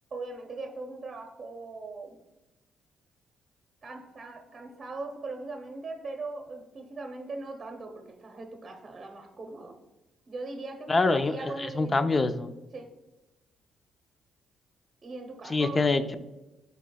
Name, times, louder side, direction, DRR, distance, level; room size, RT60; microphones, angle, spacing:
voice 1, 0.1-2.2 3.8-9.8 10.3-12.2 12.7-12.9 15.0-15.8, right 3 dB, 35° right, 3 dB, 0.8 m, -40 dB
voice 2, 10.9-12.5 15.4-16.1, left 3 dB, 30° left, 10 dB, 0.5 m, -25 dB
11.0 x 4.1 x 2.3 m, 1.0 s
cardioid pair, 90°, 0 cm